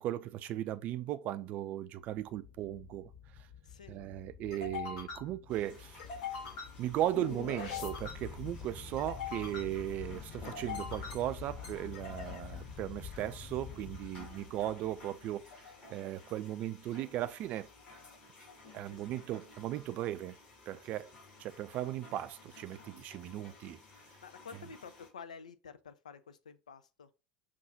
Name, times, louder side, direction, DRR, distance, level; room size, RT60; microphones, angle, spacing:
voice 1, 0.0-3.1 3.9-6.0 6.8-15.4 15.9-17.7 18.7-20.4 20.7-21.1 21.4-23.8, right 13 dB, 45° right, 0.4 m, -37 dB
sound 1, 2.4-14.9, left 6 dB, 60° left, 1.1 m, -44 dB
voice 2, 3.6-4.0 18.9-19.2 24.2-27.1, left 6 dB, 75° left, 0.4 m, -50 dB
sound 2, 5.5-25.1, left 3 dB, 30° left, 2.2 m, -55 dB
5.4 x 2.4 x 2.8 m
figure-of-eight pair, 70°, 4 cm